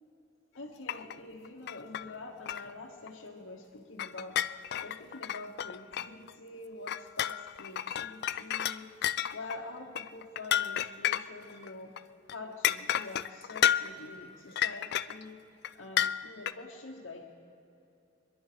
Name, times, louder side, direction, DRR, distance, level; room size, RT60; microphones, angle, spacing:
voice 1, 0.5-8.9 9.3-12.0 12.3-15.4 15.7-17.4, left 2 dB, 80° left, -1 dB, 1.2 m, -46 dB
sound 1, 0.9-1.2 1.4-2.1 2.5-2.7 3.1-3.2 4.0-6.3 6.9-11.7 12.0-12.1 12.3-12.4 12.6-14.0 14.6-15.2 15.6-15.7 16.0-16.5, left 11 dB, 55° left, 0.4 m, -31 dB
25.5 x 11.0 x 5.0 m, 2.8 s
head